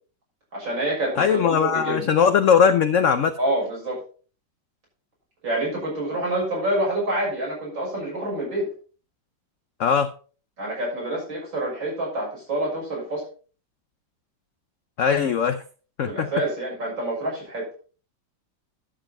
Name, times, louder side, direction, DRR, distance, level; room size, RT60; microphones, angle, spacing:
voice 1, 0.5-2.1 3.4-4.0 5.4-8.7 10.6-13.2 16.1-17.7, right 1 dB, 90° right, -4 dB, 7.1 m, -27 dB
voice 2, 1.2-3.3 9.8-10.1 15.0-15.6 16.0-16.3, left 7 dB, 65° left, 9 dB, 0.7 m, -19 dB
11.5 x 7.3 x 4.2 m, 0.38 s
omnidirectional pair, 2.0 m